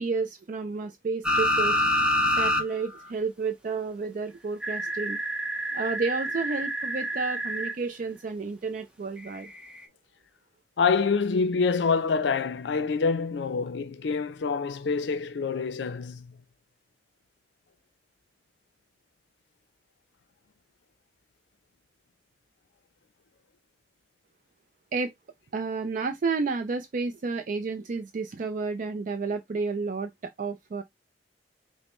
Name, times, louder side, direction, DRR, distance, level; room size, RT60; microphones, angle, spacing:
voice 1, 0.0-1.9 2.4-5.2 5.7-9.5 24.9-25.1 25.5-30.8, right 4 dB, 50° right, 0.4 m, -31 dB
sound 1, 1.2-2.6 3.0-3.1 4.6-7.7 9.4-9.5, equal, 5° right, 0.7 m, -27 dB
voice 2, 10.8-16.3, left 5 dB, 80° left, 0.5 m, -26 dB
5.2 x 2.1 x 3.0 m
head